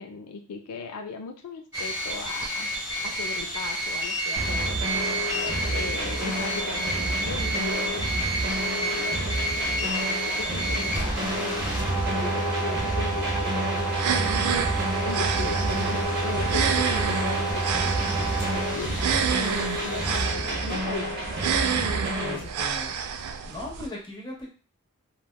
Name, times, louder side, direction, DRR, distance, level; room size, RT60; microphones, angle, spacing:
voice 1, 0.0-2.7 3.0-8.1 8.7-9.4 9.7-14.5 15.0-17.8 18.5-19.2 19.8-21.2 22.2-22.5, left 4 dB, 90° left, 5 dB, 0.4 m, -38 dB
sound 1, 1.7-20.2, right 2 dB, 10° right, 1.2 m, -29 dB
sound 2, 4.4-22.4, right 1 dB, 45° right, 0.7 m, -30 dB
sound 3, 13.9-23.9, right 7 dB, 80° right, 0.3 m, -29 dB
voice 2, 22.2-22.9 23.4-24.5, left 1 dB, 20° left, -3 dB, 0.8 m, -39 dB
3.3 x 2.2 x 2.2 m, 0.36 s
head